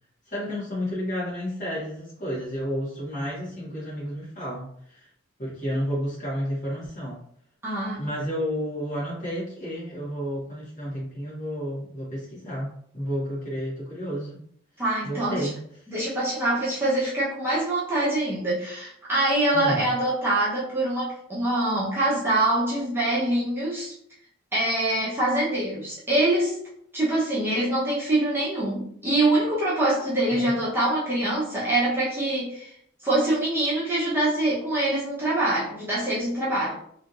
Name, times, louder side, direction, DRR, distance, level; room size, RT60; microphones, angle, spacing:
voice 1, 0.3-5.1 5.4-7.2 8.0-14.4 15.0-15.5 19.5-19.9 30.3-30.5, equal, 40° left, -6 dB, 1.5 m, -31 dB
voice 2, 7.6-8.0 14.8-15.5 15.9-23.9 24.5-26.6 26.9-32.7 33.0-36.8, right 1 dB, 10° right, -9 dB, 0.9 m, -24 dB
3.3 x 2.8 x 2.5 m, 0.66 s
head